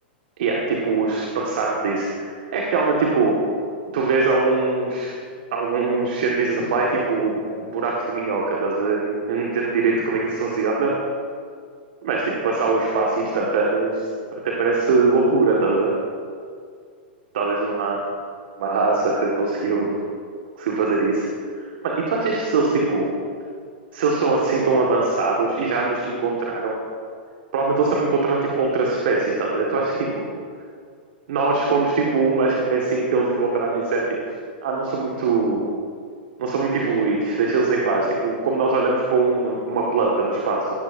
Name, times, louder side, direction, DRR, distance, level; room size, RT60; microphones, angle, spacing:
voice 1, 0.4-3.4 3.9-5.2 5.5-10.9 12.0-15.9 17.3-18.0 18.6-20.0 20.6-21.3 21.6-23.1 23.9-26.8 27.5-30.2 31.3-34.2 34.6-35.6 36.4-40.7, right 3 dB, 65° right, -2 dB, 1.8 m, -22 dB
18.0 x 11.0 x 2.7 m, 2.1 s
hypercardioid pair, 110°, 6 cm